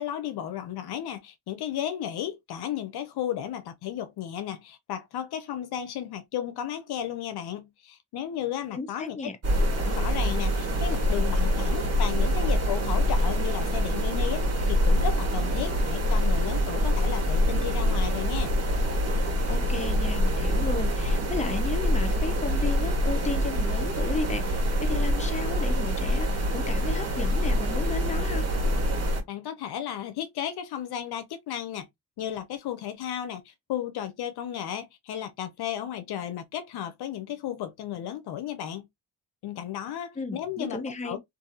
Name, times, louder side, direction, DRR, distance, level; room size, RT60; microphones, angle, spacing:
voice 1, 0.0-9.2 9.8-18.5 29.3-31.9 32.2-38.9 39.4-41.2, left 10 dB, 75° left, 0.6 m, -34 dB
voice 2, 8.7-9.4 19.5-28.5 40.2-41.2, left 3 dB, 20° left, 0.7 m, -34 dB
sound 1, 9.4-29.2, equal, 40° right, 1.5 m, -25 dB
2.7 x 2.5 x 2.5 m
supercardioid pair, 60°, 39 cm